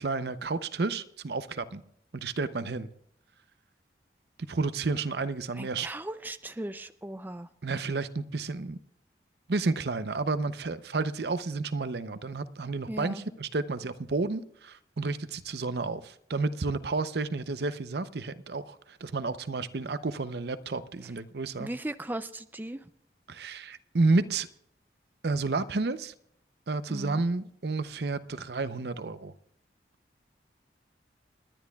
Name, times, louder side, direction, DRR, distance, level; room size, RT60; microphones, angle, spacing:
voice 1, 0.0-1.8 2.1-2.9 4.4-5.9 7.6-8.8 9.5-21.7 23.3-24.5 25.2-26.1 26.7-29.3, right 3 dB, 70° right, 0.7 m, -31 dB
voice 2, 5.5-7.5 12.9-13.2 21.6-22.9 26.9-27.2, right 1 dB, 10° right, 0.4 m, -37 dB
29.5 x 10.5 x 2.3 m
head